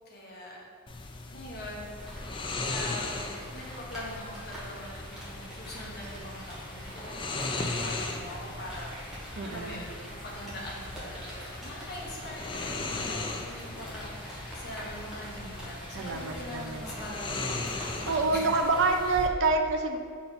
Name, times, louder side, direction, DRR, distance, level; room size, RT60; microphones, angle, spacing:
voice 1, 0.0-0.6 1.3-2.4 2.7-3.2 3.5-17.5 17.9-18.6 19.0-19.1, left 1 dB, 50° left, -4 dB, 1.3 m, -43 dB
sound 1, 0.9-19.3, left 3 dB, 25° left, 0.4 m, -38 dB
Rain, 2.0-19.0, equal, 5° right, 1.6 m, -44 dB
voice 2, 9.4-9.8 15.9-16.9 17.7-20.0, right 3 dB, 60° right, 4 dB, 0.5 m, -27 dB
6.5 x 4.2 x 4.1 m, 2.1 s
head